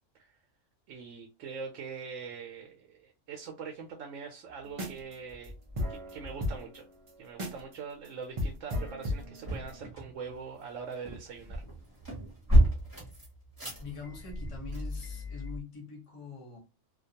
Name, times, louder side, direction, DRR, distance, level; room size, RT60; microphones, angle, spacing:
voice 1, 0.9-5.5 5.9-6.8 7.2-11.6, right 5 dB, 85° right, 1.0 m, -43 dB
sound 1, 4.5-4.8 5.3-6.5 9.1-15.6, right 1 dB, 20° right, 0.9 m, -31 dB
sound 2, 4.7-5.1 5.4-5.5 5.8-7.7 8.1-8.2 8.4-9.8, left 1 dB, 45° right, 0.4 m, -35 dB
voice 2, 13.8-16.6, left 5 dB, 30° left, 0.8 m, -44 dB
2.4 x 2.2 x 2.7 m
omnidirectional pair, 1.3 m